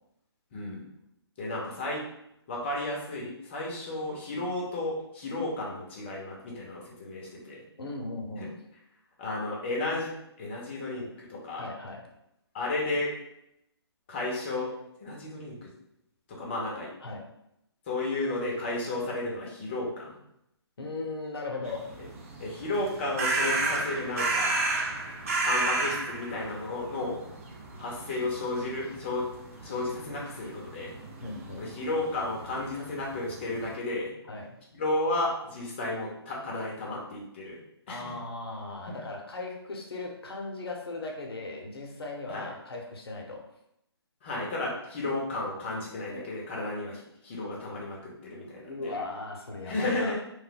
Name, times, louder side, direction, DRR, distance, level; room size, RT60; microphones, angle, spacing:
voice 1, 0.5-0.8 1.4-2.0 2.5-7.6 8.4-8.5 9.2-10.1 10.4-11.7 12.5-13.1 14.1-14.7 15.0-15.7 16.3-16.9 17.9-20.1 22.4-24.6 25.4-27.3 27.8-29.3 29.6-30.9 31.6-34.1 34.7-37.6 37.9-38.1 38.9-39.0 42.3-42.5 44.2-48.9 49.6-50.2, left 2 dB, 25° left, -3 dB, 0.7 m, -33 dB
voice 2, 7.8-8.5 11.6-12.1 17.0-17.3 20.8-21.9 31.2-31.7 34.3-34.6 37.9-43.5 48.7-50.2, left 3 dB, 65° left, 1 dB, 0.7 m, -37 dB
sound 1, 21.7-33.7, right 3 dB, 30° right, 0.5 m, -33 dB
2.5 x 2.2 x 3.9 m, 0.80 s
hypercardioid pair, 155°, 14 cm